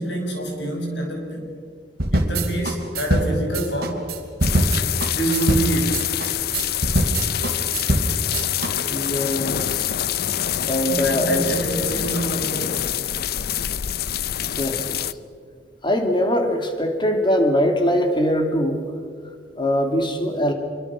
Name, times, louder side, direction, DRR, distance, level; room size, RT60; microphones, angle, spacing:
voice 1, 0.0-1.5 2.1-4.1 5.1-6.1 10.9-12.9, right 1 dB, 85° left, 2 dB, 6.1 m, -26 dB
sound 1, 2.0-8.7, right 1 dB, 60° right, 2.8 m, -23 dB
sound 2, 4.4-15.1, left 11 dB, 60° left, 0.5 m, -26 dB
voice 2, 8.9-9.9 10.7-11.4 14.6-15.1 15.8-18.8 19.6-20.5, equal, 30° left, 5 dB, 2.6 m, -22 dB
26.0 x 23.5 x 6.0 m, 2.1 s
head